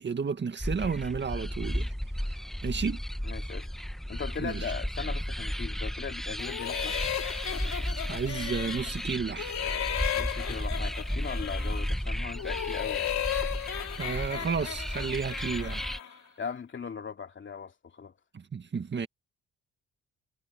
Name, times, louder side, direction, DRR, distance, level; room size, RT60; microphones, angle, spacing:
voice 1, 0.0-1.9 2.6-3.0 4.4-4.7 8.1-9.5 13.9-16.2 18.3-19.1, right 5 dB, 35° right, 1.9 m, -32 dB
sound 1, 0.6-16.0, equal, ahead, 1.3 m, -34 dB
voice 2, 3.2-3.8 4.1-7.0 10.2-13.1 16.4-18.1, left 6 dB, 40° left, 2.6 m, -39 dB
sound 2, 6.4-9.0 9.4-11.9 12.3-16.1, left 10 dB, 65° left, 3.9 m, -35 dB
cardioid pair, 90°, 30 cm